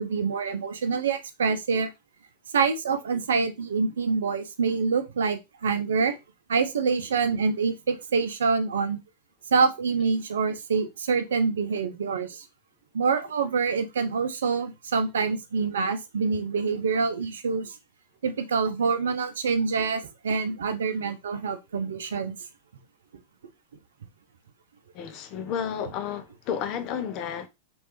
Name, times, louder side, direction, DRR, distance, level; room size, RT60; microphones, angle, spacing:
voice 1, 0.0-1.9 2.5-6.2 6.5-9.0 9.5-12.5 12.9-17.8 18.2-22.4, right 5 dB, 80° right, 0.6 m, -26 dB
voice 2, 24.9-27.5, left 8 dB, 50° left, 0.7 m, -32 dB
3.2 x 3.1 x 3.0 m
hypercardioid pair, 100°, 0 cm